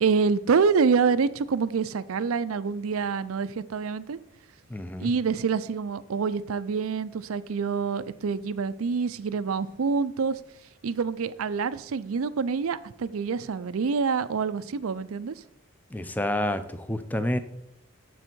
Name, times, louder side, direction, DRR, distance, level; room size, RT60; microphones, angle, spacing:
voice 1, 0.0-4.2 5.0-10.4 10.8-15.4, right 5 dB, 90° right, 15 dB, 0.5 m, -26 dB
voice 2, 4.7-5.1 15.9-17.4, left 1 dB, 10° left, 10 dB, 0.5 m, -29 dB
7.8 x 6.3 x 4.5 m, 0.83 s
head